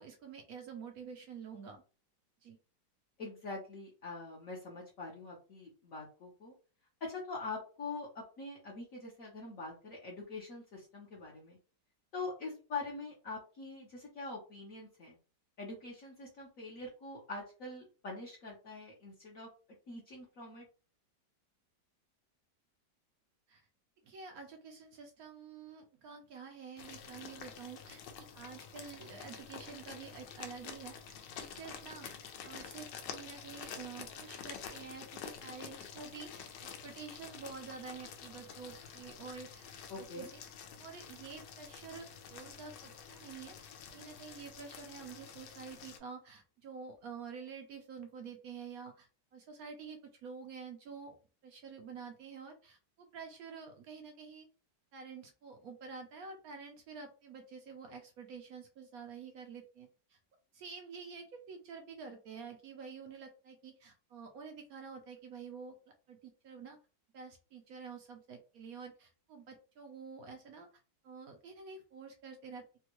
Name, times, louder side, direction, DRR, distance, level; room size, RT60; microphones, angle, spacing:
voice 1, 0.0-1.8 2.4-2.6 23.5-23.6 24.0-32.1 32.4-39.7 40.0-40.4 40.8-51.2 51.4-54.5 54.9-60.2 60.5-65.8 66.1-66.8 67.1-70.7 71.0-72.7, right 5 dB, 70° right, 4 dB, 0.9 m, -49 dB
voice 2, 3.2-6.5 7.0-11.6 12.1-15.2 15.6-19.5 19.9-20.7 39.9-40.3, left 3 dB, 55° left, -3 dB, 1.1 m, -44 dB
sound 1, 26.8-46.0, left 7 dB, 80° left, 1.2 m, -49 dB
3.4 x 2.2 x 2.9 m, 0.36 s
omnidirectional pair, 1.9 m